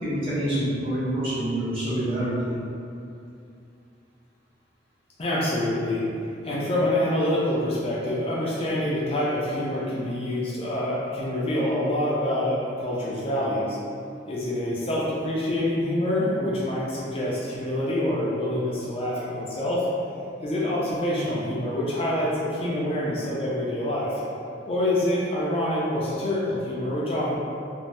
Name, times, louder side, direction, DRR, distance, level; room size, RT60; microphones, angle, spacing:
voice 1, 0.0-2.5, right 1 dB, 30° right, -12 dB, 1.1 m, -26 dB
voice 2, 5.2-6.0 6.4-13.8 14.3-19.9 20.4-24.2 24.7-27.4, left 1 dB, 30° left, -7 dB, 0.4 m, -26 dB
2.5 x 2.0 x 3.2 m, 2.6 s
head